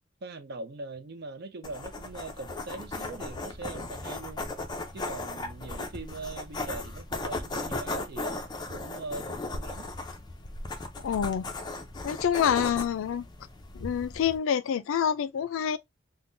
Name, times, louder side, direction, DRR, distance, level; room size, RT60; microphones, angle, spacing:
voice 1, 0.2-4.5 4.9-8.4 8.7-9.9, right 3 dB, 55° right, 0.5 m, -41 dB
sound 1, 1.6-14.4, left 2 dB, 20° left, 0.5 m, -37 dB
voice 2, 11.0-11.5 12.0-13.3 13.7-15.8, left 8 dB, 80° left, 0.4 m, -27 dB
3.6 x 2.1 x 2.5 m
head